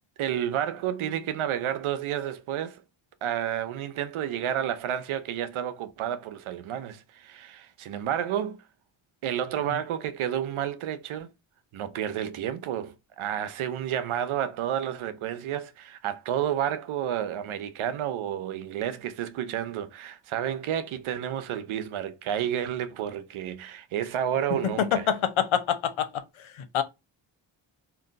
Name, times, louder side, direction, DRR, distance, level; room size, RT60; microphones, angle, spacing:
voice 1, 0.2-2.8 3.2-8.6 9.2-11.3 11.7-25.1, right 10 dB, 75° right, 0.6 m, -30 dB
voice 2, 24.8-26.2 26.7-26.8, left 9 dB, 70° left, 0.7 m, -25 dB
2.5 x 2.1 x 3.8 m
supercardioid pair, 50°, 50 cm